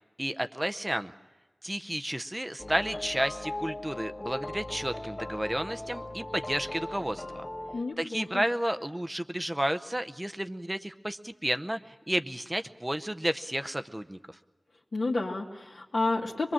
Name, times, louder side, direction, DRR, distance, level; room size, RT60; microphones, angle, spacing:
voice 1, 0.2-1.1 1.6-7.5 8.0-14.2, right 1 dB, 15° right, 9 dB, 0.7 m, -32 dB
sound 1, 2.6-7.8, left 1 dB, 35° left, 2.2 m, -39 dB
voice 2, 7.7-8.4 14.9-16.5, left 2 dB, 75° left, -2 dB, 2.0 m, -30 dB
23.5 x 22.5 x 7.5 m, 1.2 s
wide cardioid pair, 75°, 0 cm